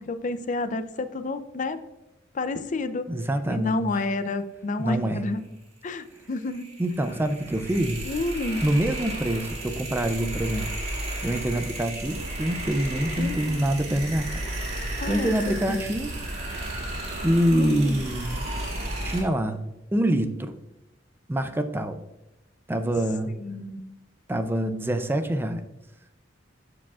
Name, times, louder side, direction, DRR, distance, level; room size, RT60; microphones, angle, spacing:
voice 1, 0.0-1.8 2.3-3.1 3.5-5.4 5.8-6.7 8.0-8.6 13.2-13.7 15.0-15.3 15.7-15.8 17.5-18.0 23.3-23.9, left 2 dB, 40° left, 12 dB, 0.5 m, -30 dB
voice 2, 3.1-3.9 4.8-5.2 6.8-8.0 8.6-10.7 11.2-14.3 15.1-16.1 17.2-18.4 19.0-19.6 19.9-20.5 21.3-22.0 22.7-23.3 24.3-25.6, right 1 dB, 10° right, 8 dB, 0.4 m, -25 dB
sound 1, 6.1-19.2, right 1 dB, 35° right, 2.1 m, -34 dB
sound 2, 12.0-19.3, right 2 dB, 80° right, 0.9 m, -41 dB
13.0 x 4.9 x 2.4 m, 0.95 s
head